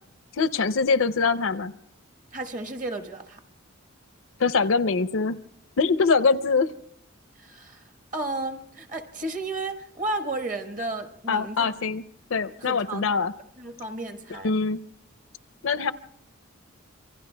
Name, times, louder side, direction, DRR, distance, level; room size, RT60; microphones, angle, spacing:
voice 1, 0.4-1.7 4.4-5.4 5.8-6.7 11.3-12.0 12.3-13.3 14.3-14.8 15.6-15.9, left 4 dB, 65° left, 0.5 m, -23 dB
voice 2, 2.3-3.4 7.4-7.8 8.1-11.7 12.6-13.1 13.6-14.5, right 2 dB, 40° right, 1.2 m, -33 dB
27.0 x 24.0 x 2.2 m
head